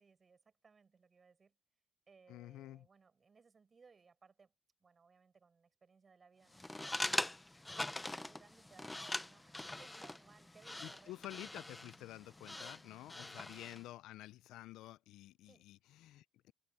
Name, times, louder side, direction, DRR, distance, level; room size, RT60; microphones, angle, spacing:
voice 1, 0.0-1.6 2.1-4.5 4.8-7.5 7.8-11.1 13.3-13.6 15.4-15.7, right 5 dB, 30° right, 8.0 m, -65 dB
voice 2, 2.3-2.9 10.8-16.5, left 15 dB, 80° left, 0.5 m, -51 dB
sound 1, 6.5-13.9, left 2 dB, 10° left, 0.7 m, -43 dB
cardioid pair, 105°, 0 cm